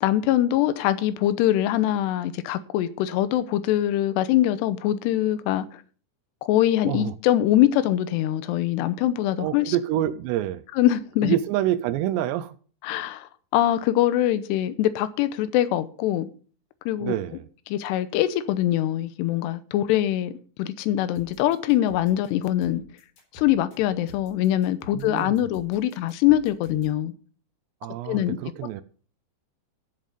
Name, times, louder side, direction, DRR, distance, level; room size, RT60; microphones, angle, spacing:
voice 1, 0.0-5.8 6.4-9.8 10.7-11.4 12.8-16.3 16.9-17.1 17.7-20.3 20.6-22.8 23.3-27.1 28.1-28.4, left 13 dB, 85° left, 2.9 m, -23 dB
voice 2, 6.8-7.1 9.4-10.6 11.2-12.6 17.0-17.5 24.9-25.4 27.8-28.8, right 13 dB, 85° right, 2.8 m, -27 dB
sound 1, 21.2-27.0, left 2 dB, 55° left, 5.7 m, -49 dB
13.0 x 7.6 x 5.2 m
omnidirectional pair, 4.9 m